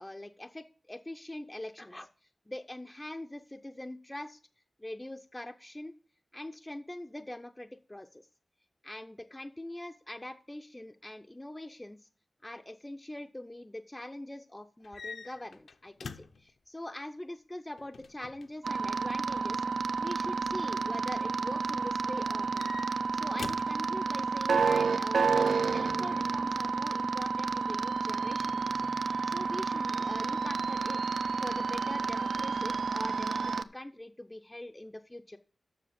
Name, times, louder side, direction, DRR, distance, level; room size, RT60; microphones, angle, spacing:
voice 1, 0.0-2.1 2.5-4.4 4.8-5.9 6.3-8.3 8.8-12.0 12.4-19.6 20.0-25.5 25.7-31.0 31.4-35.4, left 1 dB, 15° left, 5 dB, 0.4 m, -43 dB
sound 1, 14.8-16.5 17.8-18.5 20.0-20.4 22.2-23.8 25.4-26.1, left 5 dB, 75° left, 0.7 m, -46 dB
sound 2, 18.6-33.6, right 5 dB, 80° right, 0.5 m, -30 dB
7.5 x 6.4 x 6.8 m, 0.41 s
wide cardioid pair, 120°, 0 cm